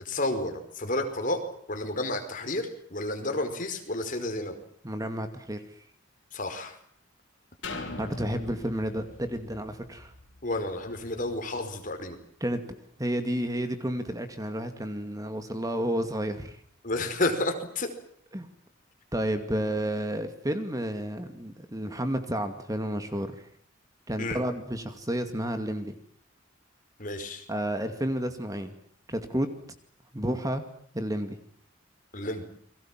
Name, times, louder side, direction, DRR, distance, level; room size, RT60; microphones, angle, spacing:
voice 1, 0.0-1.4 1.7-4.6 6.3-6.8 10.4-12.2 16.8-17.9 24.2-24.4 27.0-27.4 32.1-32.5, left 2 dB, 40° left, 6 dB, 5.1 m, -31 dB
voice 2, 4.8-5.8 8.0-10.1 12.4-12.6 13.0-16.6 18.3-18.5 19.1-23.3 24.1-26.0 27.5-28.7 29.1-29.5 30.1-30.6 30.9-31.4, right 1 dB, 20° right, 8 dB, 2.3 m, -31 dB
sound 1, 7.6-11.4 11.9-12.0, left 2 dB, 65° left, 5.9 m, -42 dB
30.0 x 23.0 x 7.6 m, 0.62 s
head